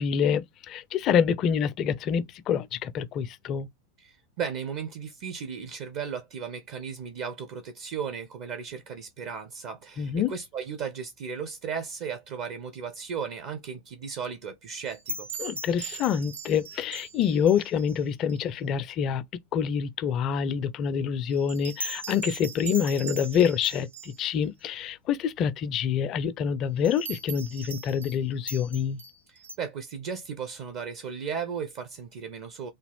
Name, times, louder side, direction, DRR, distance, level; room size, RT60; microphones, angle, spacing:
voice 1, 0.0-3.7 10.0-10.3 15.4-19.2 19.5-29.0, left 8 dB, 35° left, 0.4 m, -26 dB
voice 2, 4.0-15.3 29.3-32.7, right 6 dB, 45° right, 0.6 m, -35 dB
sound 1, 14.9-18.0 18.3-18.4 21.3-24.3 26.8-28.2 28.5-29.5, right 3 dB, 75° right, 0.9 m, -39 dB
3.3 x 2.4 x 3.3 m
figure-of-eight pair, 90°, 0 cm